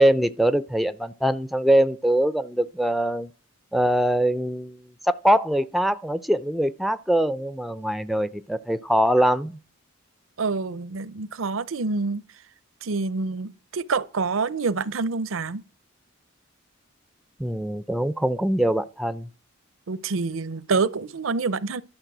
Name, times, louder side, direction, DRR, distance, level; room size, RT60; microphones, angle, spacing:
voice 1, 0.0-3.3 3.7-4.8 5.1-9.6 17.4-19.3, right 1 dB, ahead, 0.4 m, -22 dB
voice 2, 10.4-12.2 12.8-15.6 19.9-21.8, right 4 dB, 75° right, 0.6 m, -27 dB
12.0 x 6.6 x 6.1 m
head